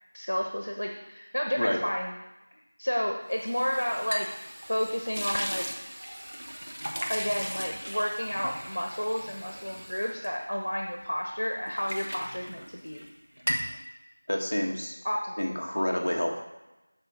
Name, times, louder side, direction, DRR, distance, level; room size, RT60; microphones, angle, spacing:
voice 1, 0.1-2.1 2.8-4.3 4.7-5.6 7.1-13.1 15.0-15.5, equal, 85° left, 2 dB, 1.3 m, -31 dB
sound 1, 3.3-11.1 11.4-13.1 13.4-13.8, equal, 65° right, 1.3 m, -37 dB
voice 2, 14.3-14.9 15.4-16.4, equal, 50° left, 0 dB, 1.6 m, -28 dB
7.8 x 5.6 x 4.4 m, 0.97 s
figure-of-eight pair, 180°, 0 cm